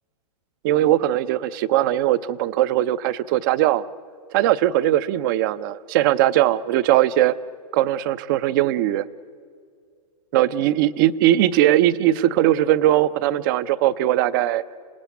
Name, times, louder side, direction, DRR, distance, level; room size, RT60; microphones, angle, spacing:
voice 1, 0.6-3.8 4.3-7.3 7.7-9.0 10.3-14.6, right 13 dB, 35° right, 18 dB, 0.6 m, -20 dB
27.0 x 18.5 x 8.3 m, 2.2 s
hypercardioid pair, 160°, 20 cm